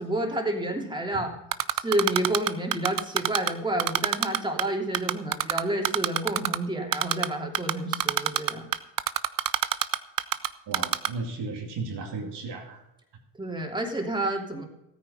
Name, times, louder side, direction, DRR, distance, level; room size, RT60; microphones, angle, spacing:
voice 1, 0.0-1.3 1.7-8.7 13.4-14.7, right 1 dB, 10° right, 1 dB, 3.0 m, -29 dB
Typing, 1.5-3.5 3.8-4.6 4.9-6.6 6.9-7.3 7.5-10.5 10.7-11.1, right 11 dB, 50° right, 0.7 m, -24 dB
voice 2, 10.7-12.8, right 3 dB, 70° right, 1 dB, 2.6 m, -34 dB
13.5 x 9.4 x 5.6 m, 0.89 s
supercardioid pair, 60°, 42 cm